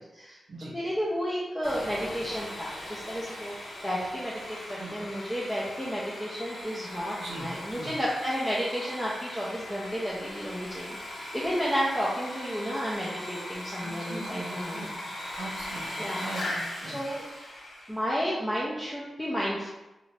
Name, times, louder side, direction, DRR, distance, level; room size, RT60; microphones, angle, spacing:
voice 1, 0.7-3.5 3.8-14.9 16.0-16.2 16.9-17.2 17.9-19.7, equal, 10° left, -6 dB, 0.5 m, -32 dB
Sawing, 1.6-18.1, left 1 dB, 70° left, 0.8 m, -39 dB
voice 2, 7.2-7.9 13.8-14.9 15.4-17.0, right 2 dB, 85° right, -4 dB, 0.6 m, -40 dB
2.6 x 2.5 x 3.2 m, 1.0 s
wide cardioid pair, 95°, 0 cm